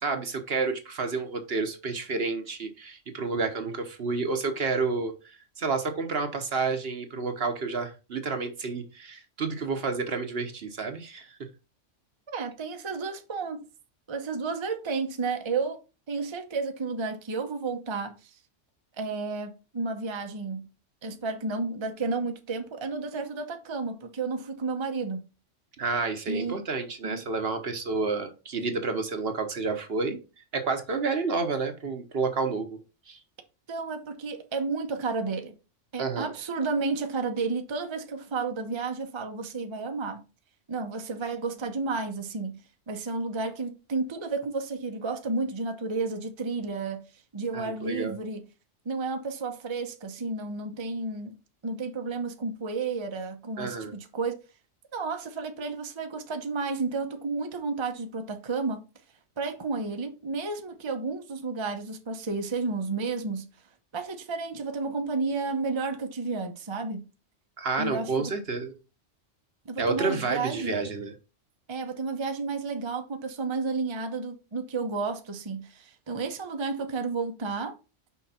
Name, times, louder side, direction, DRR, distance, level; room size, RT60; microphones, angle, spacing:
voice 1, 0.0-11.3 25.8-30.2 30.5-32.8 33.1-33.2 36.0-36.3 47.5-48.2 53.6-53.9 67.6-68.8 69.8-71.1, right 4 dB, 55° right, 1.2 m, -30 dB
voice 2, 12.3-13.7 14.1-15.8 16.1-18.4 19.0-20.7 21.0-25.3 26.3-26.6 27.0-27.3 33.7-35.6 35.9-40.2 40.7-42.6 42.9-47.1 47.3-48.4 48.8-51.4 51.6-54.4 54.9-58.8 59.4-63.5 63.9-67.1 67.8-68.3 69.6-70.9 71.7-77.8, right 4 dB, 25° right, 0.7 m, -32 dB
5.9 x 4.7 x 4.2 m
omnidirectional pair, 1.3 m